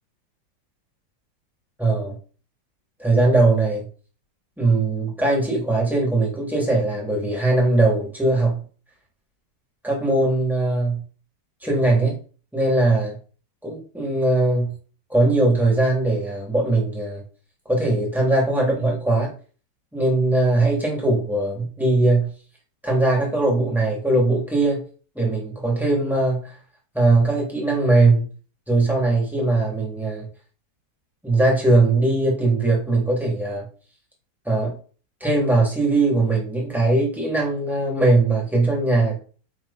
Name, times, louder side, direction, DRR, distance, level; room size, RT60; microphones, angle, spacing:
voice 1, 1.8-2.2 3.0-3.9 4.6-8.6 9.8-11.0 11.6-12.2 12.5-13.2 13.6-14.7 15.1-17.2 17.6-19.3 19.9-22.3 22.8-24.8 25.1-26.5 26.9-28.3 28.7-30.3 31.2-33.7 34.4-34.7 35.2-39.2, right 2 dB, ahead, -3 dB, 3.1 m, -20 dB
9.6 x 4.4 x 4.3 m, 0.39 s
omnidirectional pair, 1.9 m